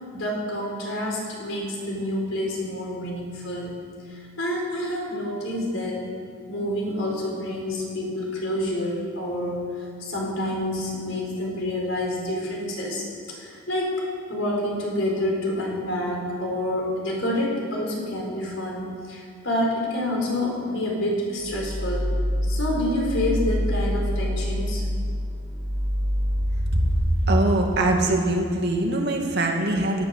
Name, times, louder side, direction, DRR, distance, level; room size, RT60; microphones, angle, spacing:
voice 1, 0.1-3.8 4.1-6.1 6.5-9.7 10.0-22.1 22.4-24.8, left 1 dB, 70° left, -2 dB, 4.2 m, -28 dB
sound 1, 21.4-27.0, equal, 30° right, 4.8 m, -26 dB
voice 2, 26.7-30.0, right 1 dB, 55° right, 1 dB, 2.1 m, -22 dB
17.0 x 11.5 x 6.5 m, 2.3 s
head